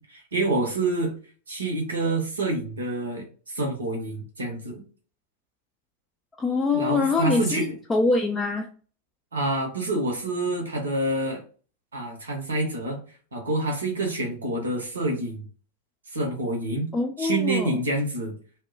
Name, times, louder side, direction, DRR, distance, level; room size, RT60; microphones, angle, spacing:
voice 1, 0.1-1.1 1.5-3.2 3.5-4.8 6.7-7.7 9.3-11.4 11.9-13.0 13.3-15.4 16.1-16.9 17.2-18.3, right 2 dB, 70° right, 1 dB, 0.7 m, -27 dB
voice 2, 6.4-8.7 16.9-17.8, left 3 dB, 15° left, 2 dB, 0.3 m, -24 dB
2.1 x 2.1 x 3.7 m, 0.40 s
figure-of-eight pair, 90°, 0 cm